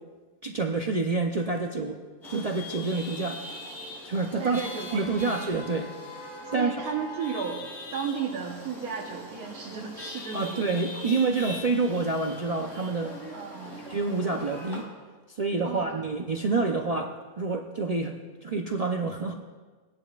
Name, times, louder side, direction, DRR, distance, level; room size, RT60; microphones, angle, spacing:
voice 1, 0.4-2.0 2.3-3.4 4.0-4.6 4.9-6.8 10.3-13.2 13.9-14.9 15.3-19.3, right 3 dB, 55° right, 1 dB, 0.4 m, -28 dB
Chatter / Vehicle horn car horn honking / Traffic noise roadway noise, 2.2-14.8, left 1 dB, 15° left, 3.2 m, -41 dB
voice 2, 4.4-5.3 6.5-7.6 7.9-11.0 13.3-13.8 15.6-15.9, right 6 dB, 85° right, -1 dB, 1.5 m, -34 dB
18.5 x 10.5 x 2.4 m, 1.4 s
omnidirectional pair, 1.5 m